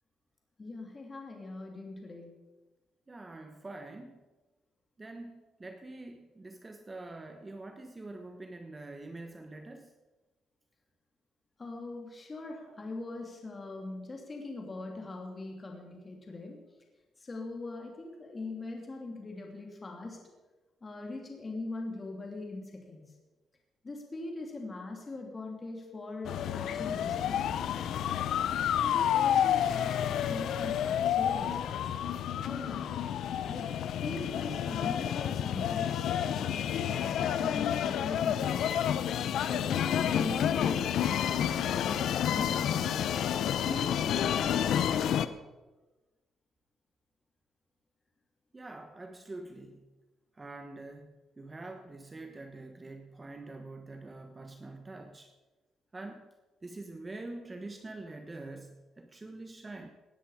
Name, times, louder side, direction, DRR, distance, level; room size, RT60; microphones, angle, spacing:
voice 1, 0.6-2.3 11.6-16.6 17.2-20.2 20.8-23.0 23.8-28.0 28.8-31.9 32.4-33.0 33.4-33.7 34.0-36.0 36.3-38.8 39.5-43.1 43.6-45.1, left 2 dB, 30° left, 1 dB, 3.0 m, -41 dB
voice 2, 3.1-4.2 5.0-9.9 48.5-49.9 50.4-55.3 55.9-56.3 56.6-59.9, right 2 dB, 25° right, 6 dB, 1.2 m, -45 dB
sound 1, 26.2-45.3, left 9 dB, 75° left, 0.7 m, -30 dB
18.5 x 10.0 x 5.0 m, 1.2 s
cardioid pair, 90°, 0 cm